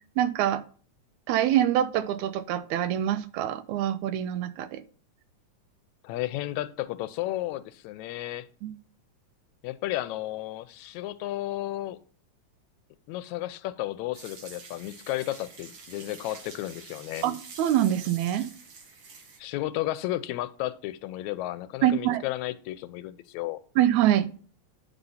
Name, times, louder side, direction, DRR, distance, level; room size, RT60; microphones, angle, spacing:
voice 1, 0.2-0.6 1.3-4.8 8.6-8.7 17.2-18.5 21.8-22.2 23.8-24.3, right 11 dB, 90° right, 2.0 m, -25 dB
voice 2, 6.0-8.5 9.6-12.0 13.1-17.3 19.4-23.6, left 15 dB, 80° left, 1.8 m, -33 dB
sound 1, 14.1-19.4, right 4 dB, 50° right, 1.6 m, -47 dB
9.7 x 4.0 x 5.5 m
omnidirectional pair, 3.3 m